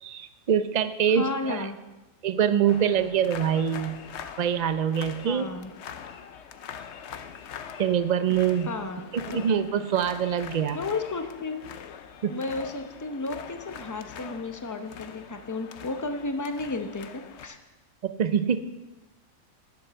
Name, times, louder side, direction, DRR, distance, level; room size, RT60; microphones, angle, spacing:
voice 1, 0.0-1.7 2.2-4.0 4.4-5.5 7.8-8.7 9.1-10.8 12.2-12.3 18.0-18.6, right 8 dB, 60° right, 11 dB, 0.4 m, -24 dB
voice 2, 1.1-1.8 5.2-5.7 8.7-9.1 10.7-11.6 12.3-17.6, left 3 dB, 20° left, 6 dB, 0.6 m, -33 dB
sound 1, 2.7-17.5, left 7 dB, 60° left, 0.9 m, -43 dB
11.0 x 7.3 x 6.8 m, 1.1 s
omnidirectional pair, 1.4 m